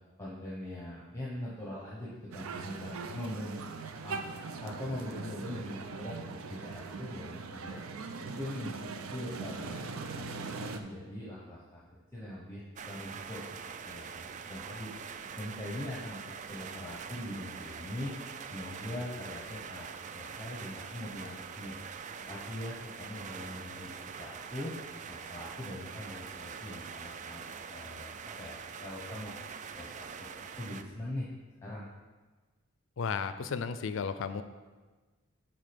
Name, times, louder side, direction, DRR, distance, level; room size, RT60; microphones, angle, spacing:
voice 1, 0.2-3.6 4.0-4.2 4.6-7.8 8.2-11.8 12.1-14.9 15.4-18.1 18.4-21.8 22.3-24.7 25.1-28.1 28.4-30.3 30.6-31.3 31.6-31.9, left 1 dB, 15° left, -6 dB, 0.9 m, -42 dB
sound 1, 2.3-10.8, right 4 dB, 85° right, 0.5 m, -41 dB
sound 2, 12.8-30.8, right 6 dB, 35° right, 0.3 m, -44 dB
voice 2, 33.0-34.4, left 5 dB, 65° left, 11 dB, 0.4 m, -34 dB
7.4 x 4.4 x 5.2 m, 1.3 s
head